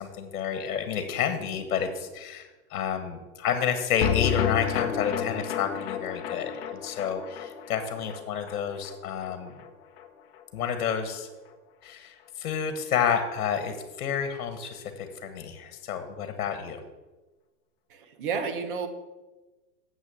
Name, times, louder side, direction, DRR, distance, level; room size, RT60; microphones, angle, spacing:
voice 1, 0.0-9.5 10.5-11.3 11.8-16.8, left 7 dB, 60° left, 8 dB, 1.4 m, -30 dB
sound 1, 4.0-10.4 10.7-10.8 11.1-11.2, left 9 dB, 40° left, 0.9 m, -31 dB
voice 2, 17.9-18.9, right 5 dB, 35° right, 8 dB, 1.0 m, -31 dB
7.4 x 6.5 x 7.0 m, 1.2 s
hypercardioid pair, 170°, 48 cm